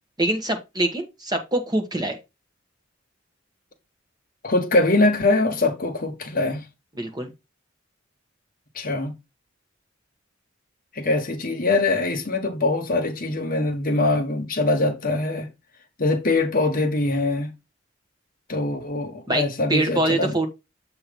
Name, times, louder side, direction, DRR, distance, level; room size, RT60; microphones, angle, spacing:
voice 1, 0.2-2.2 7.0-7.3 19.3-20.5, right 1 dB, 20° right, 1.2 m, -24 dB
voice 2, 4.4-6.6 8.7-9.1 10.9-15.5 16.0-17.5 18.5-20.4, left 2 dB, 45° left, 1.3 m, -23 dB
7.7 x 3.0 x 5.2 m
head